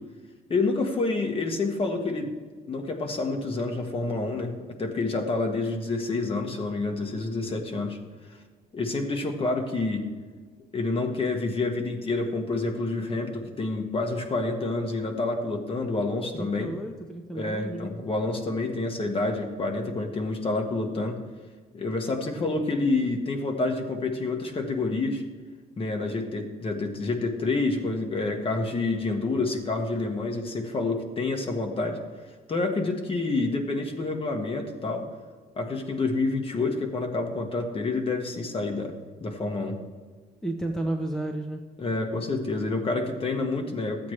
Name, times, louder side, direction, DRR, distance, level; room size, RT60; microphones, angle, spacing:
voice 1, 0.5-2.3 2.7-8.0 8.7-10.0 10.7-16.7 17.3-21.2 21.7-25.2 25.8-32.0 32.5-35.1 35.6-38.9 39.2-39.8 41.8-44.1, left 3 dB, 35° left, 4 dB, 1.5 m, -28 dB
voice 2, 16.3-18.0 40.4-41.6, right 1 dB, 5° left, 3 dB, 0.8 m, -32 dB
13.5 x 8.4 x 3.2 m, 1.5 s
cardioid pair, 110°, 17 cm